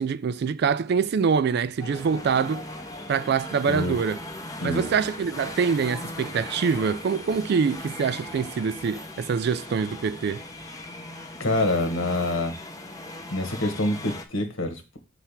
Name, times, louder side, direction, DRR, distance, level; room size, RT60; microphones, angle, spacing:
voice 1, 0.0-2.7 3.1-4.2 4.6-10.4, right 6 dB, 55° right, 0.3 m, -25 dB
sound 1, 1.8-14.3, left 2 dB, 20° left, 0.6 m, -39 dB
voice 2, 11.4-12.5 13.3-15.0, left 1 dB, 80° left, 1.4 m, -26 dB
5.9 x 3.3 x 5.6 m
head